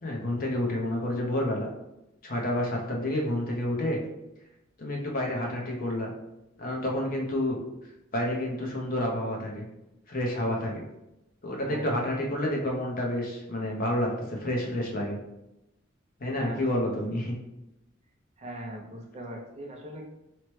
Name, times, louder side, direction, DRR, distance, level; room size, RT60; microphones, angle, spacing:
voice 1, 0.0-1.7 2.2-4.0 4.8-6.1 6.6-7.6 8.1-9.7 10.1-10.8 11.4-15.2 16.2-17.4, left 1 dB, 45° left, -1 dB, 0.6 m, -29 dB
voice 2, 11.6-12.0 16.4-17.0 18.4-20.1, equal, 35° right, 0 dB, 0.4 m, -41 dB
2.9 x 2.1 x 3.1 m, 0.91 s
head